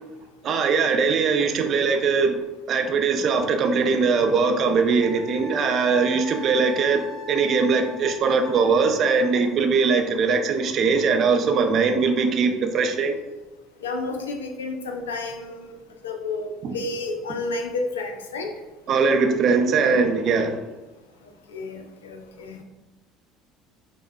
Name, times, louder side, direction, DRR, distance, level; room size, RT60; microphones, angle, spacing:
voice 1, 0.4-2.4 2.7-13.2 16.6-16.7 18.9-20.6, right 5 dB, 45° right, 6 dB, 0.5 m, -21 dB
Wind instrument woodwind instrument, 5.0-9.3, left 2 dB, 15° left, 1.2 m, -40 dB
voice 2, 13.8-15.7 16.0-18.5 21.5-22.6, left 3 dB, 80° left, 4 dB, 0.4 m, -31 dB
5.3 x 2.1 x 2.2 m, 1.1 s
figure-of-eight pair, 65°, 0 cm